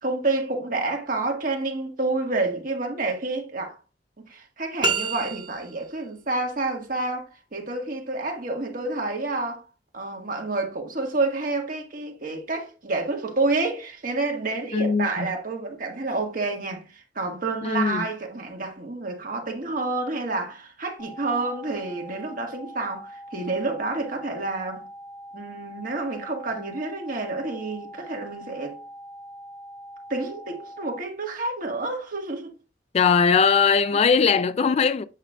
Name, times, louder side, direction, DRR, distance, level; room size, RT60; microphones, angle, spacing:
voice 1, 0.0-3.8 4.3-9.6 9.9-24.8 25.3-28.8 30.1-32.5, right 3 dB, 50° right, 1.6 m, -29 dB
sound 1, 4.8-5.9, right 3 dB, 25° right, 1.1 m, -27 dB
voice 2, 14.7-15.3 17.6-18.1 32.9-35.0, left 5 dB, 35° left, 0.3 m, -20 dB
sound 2, 21.0-31.0, equal, 15° left, 1.4 m, -43 dB
8.2 x 5.7 x 2.3 m
head